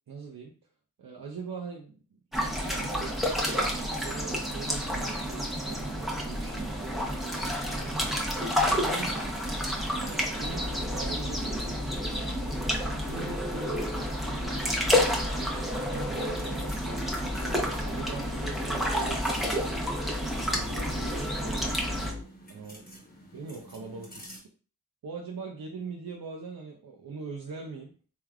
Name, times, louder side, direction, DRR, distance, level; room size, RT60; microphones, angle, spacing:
voice 1, 0.1-0.5 1.0-3.2 3.7-6.9 7.6-9.4 10.0-11.9 12.6-13.9 14.3-14.7 15.3-17.1 17.8-19.8 20.5-22.2 22.5-22.9 23.3-24.2 25.0-27.9, right 5 dB, 60° right, -1 dB, 0.6 m, -42 dB
sound 1, 2.3-22.1, equal, ahead, 0.8 m, -30 dB
sound 2, 10.4-22.2, left 2 dB, 20° right, 1.1 m, -37 dB
sound 3, 16.2-24.4, right 1 dB, 25° left, 1.1 m, -50 dB
3.2 x 2.3 x 2.4 m, 0.39 s
cardioid pair, 40°, 39 cm